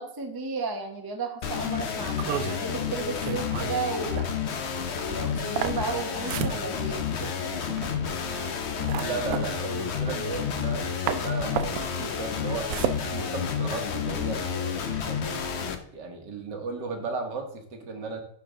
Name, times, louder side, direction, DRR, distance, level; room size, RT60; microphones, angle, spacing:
voice 1, 0.0-4.2 4.9-7.0, right 4 dB, 20° right, 3 dB, 0.6 m, -33 dB
sound 1, 1.4-15.7, left 7 dB, 80° left, 0.6 m, -30 dB
sound 2, 2.1-10.8 11.1-14.0, right 10 dB, 90° right, 0.8 m, -34 dB
voice 2, 8.8-10.9 11.2-12.7 13.1-15.5 15.9-18.2, right 4 dB, 60° right, 5 dB, 1.8 m, -35 dB
11.0 x 4.5 x 3.7 m, 0.63 s
omnidirectional pair, 2.2 m